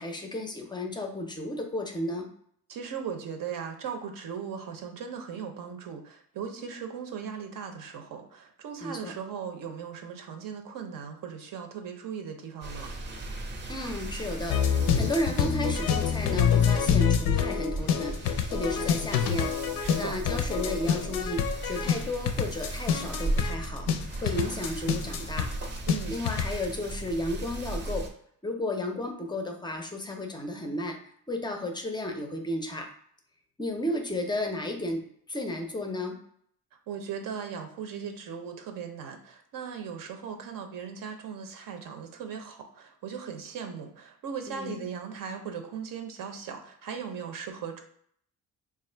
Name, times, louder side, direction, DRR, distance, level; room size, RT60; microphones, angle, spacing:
voice 1, 0.0-2.3 8.8-9.1 13.7-19.5 20.0-23.9 24.2-25.5 26.1-28.1 28.4-31.0 31.3-32.9 33.6-35.0 35.3-36.2 44.5-44.8, left 1 dB, 15° left, 4 dB, 0.4 m, -33 dB
voice 2, 2.7-12.9 19.8-20.2 25.9-26.2 36.9-47.8, right 7 dB, 70° right, 5 dB, 0.7 m, -38 dB
sound 1, 12.6-28.1, right 2 dB, 30° right, 0.6 m, -36 dB
sound 2, 14.5-26.6, left 8 dB, 90° left, 0.5 m, -26 dB
3.1 x 2.4 x 4.3 m, 0.65 s
wide cardioid pair, 160°, 34 cm